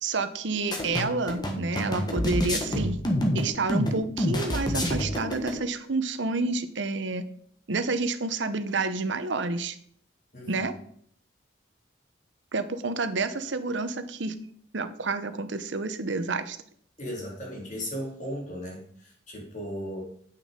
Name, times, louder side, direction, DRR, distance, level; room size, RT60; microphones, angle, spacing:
voice 1, 0.0-3.0 3.3-7.3 7.7-9.8 10.5-10.7 12.5-14.3 14.7-16.6, right 3 dB, 70° right, 11 dB, 0.9 m, -29 dB
sound 1, 0.7-5.6, left 1 dB, 20° left, 1.4 m, -27 dB
voice 2, 10.3-10.7 17.0-20.0, equal, 40° left, -1 dB, 3.1 m, -36 dB
8.4 x 6.5 x 5.2 m, 0.62 s
head